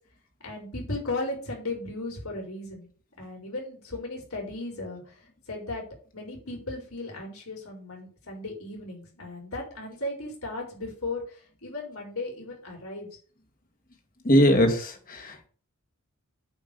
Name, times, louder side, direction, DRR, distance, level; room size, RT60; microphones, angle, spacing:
voice 1, 0.4-2.9 3.2-5.2 5.5-5.8 6.1-13.1, left 2 dB, 70° left, -1 dB, 4.7 m, -36 dB
voice 2, 14.2-15.5, equal, 40° left, 4 dB, 2.1 m, -21 dB
8.3 x 5.5 x 6.9 m, 0.42 s
head